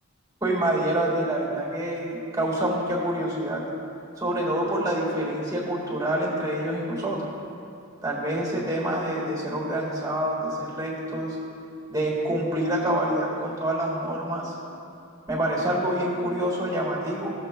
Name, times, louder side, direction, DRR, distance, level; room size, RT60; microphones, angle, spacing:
voice 1, 0.4-3.6 4.2-7.2 8.0-11.4 11.9-14.5 15.3-17.3, right 1 dB, 15° right, -3 dB, 1.6 m, -27 dB
14.5 x 7.1 x 2.2 m, 2.6 s
head